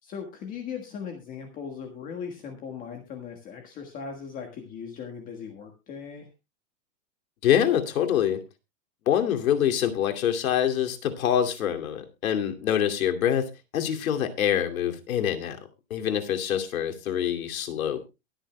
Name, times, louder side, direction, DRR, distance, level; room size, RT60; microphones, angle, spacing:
voice 1, 0.0-6.3, left 6 dB, 20° left, 4 dB, 1.6 m, -38 dB
voice 2, 7.4-8.4 9.1-15.6 15.9-18.1, left 9 dB, 85° left, 6 dB, 2.6 m, -25 dB
22.5 x 9.3 x 2.2 m, 0.26 s
supercardioid pair, 170°, 41 cm